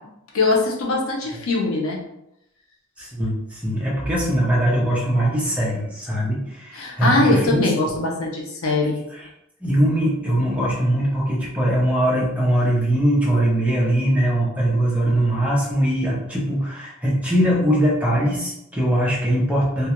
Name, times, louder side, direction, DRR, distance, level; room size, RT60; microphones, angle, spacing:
voice 1, 0.3-2.0 6.7-9.0, left 2 dB, 80° left, -1 dB, 0.6 m, -21 dB
voice 2, 3.0-7.7 9.1-9.3 9.6-19.9, right 1 dB, 5° right, -5 dB, 0.5 m, -21 dB
2.3 x 2.2 x 2.9 m, 0.81 s
head